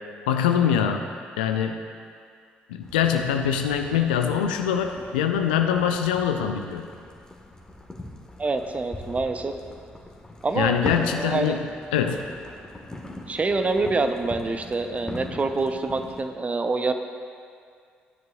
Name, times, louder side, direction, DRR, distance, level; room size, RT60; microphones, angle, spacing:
voice 1, 0.3-1.0 1.4-1.8 2.7-6.9 10.6-11.6 11.9-12.2, left 8 dB, 70° left, 5 dB, 0.6 m, -23 dB
sound 1, 2.8-16.2, left 1 dB, 15° left, 1.6 m, -40 dB
voice 2, 8.4-9.5 10.4-11.6 13.3-16.9, right 3 dB, 25° right, 7 dB, 0.8 m, -26 dB
16.0 x 10.5 x 2.4 m, 2.2 s
figure-of-eight pair, 45°, 5 cm